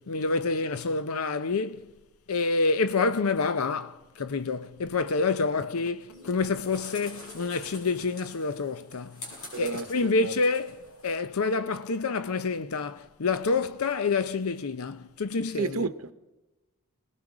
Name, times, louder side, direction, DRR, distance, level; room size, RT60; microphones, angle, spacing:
voice 1, 0.0-1.9 2.3-9.3 9.6-15.9, left 4 dB, 85° left, 0.7 m, -28 dB
sound 1, 6.1-11.1, left 2 dB, 70° left, 7.7 m, -46 dB
voice 2, 9.5-10.3 15.6-16.1, right 4 dB, 70° right, 0.8 m, -31 dB
27.0 x 20.0 x 4.9 m
head